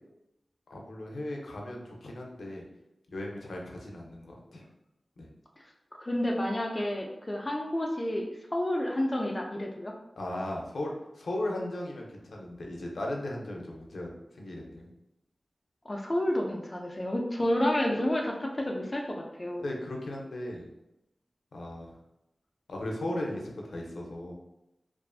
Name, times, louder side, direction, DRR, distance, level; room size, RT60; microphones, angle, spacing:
voice 1, 0.7-2.6 3.1-4.6 5.2-5.3 10.2-14.9 19.6-20.7 21.5-21.9 22.7-24.3, left 1 dB, 90° left, 0 dB, 0.4 m, -37 dB
voice 2, 6.0-9.9 15.9-19.6, left 1 dB, 25° left, 0 dB, 0.3 m, -30 dB
2.4 x 2.4 x 2.3 m, 0.90 s
wide cardioid pair, 90°, 0 cm